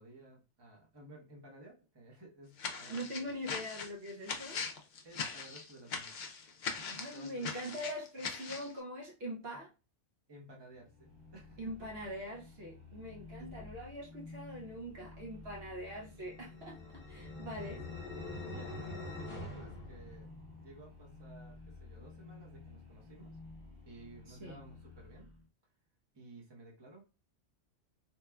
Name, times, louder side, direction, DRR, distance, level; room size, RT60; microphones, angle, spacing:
voice 1, 0.0-3.4 5.0-6.1 6.8-7.7 10.3-12.1 13.4-13.7 17.6-18.0 18.3-18.8 19.1-20.3 20.6-23.4 23.8-25.3 26.1-27.0, right 2 dB, 25° right, -2 dB, 0.8 m, -55 dB
sound 1, 2.6-8.7, left 5 dB, 60° left, 0.5 m, -41 dB
voice 2, 2.9-4.6 6.9-9.7 11.6-16.8 17.1-17.8 24.3-24.6, equal, 65° right, -1 dB, 0.9 m, -43 dB
sound 2, 10.7-25.5, left 3 dB, 45° right, 0.4 m, -52 dB
sound 3, 16.1-20.7, left 2 dB, 45° left, 1.0 m, -45 dB
3.0 x 2.2 x 2.2 m, 0.31 s
omnidirectional pair, 1.2 m